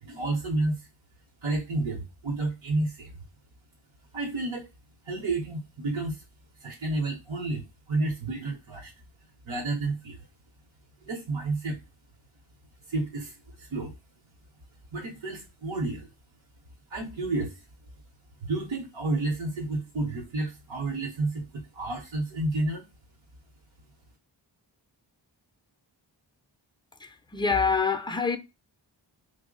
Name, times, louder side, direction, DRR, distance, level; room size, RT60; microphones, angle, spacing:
voice 1, 0.0-0.9 1.4-3.2 4.1-4.7 5.0-6.2 6.6-8.9 9.4-10.3 11.0-11.8 12.9-13.9 14.9-16.1 16.9-17.6 18.4-22.8, right 2 dB, 80° right, 0.8 m, -31 dB
voice 2, 27.0-28.4, left 5 dB, 10° left, 0.4 m, -26 dB
3.0 x 2.0 x 3.7 m
cardioid pair, 45°, 46 cm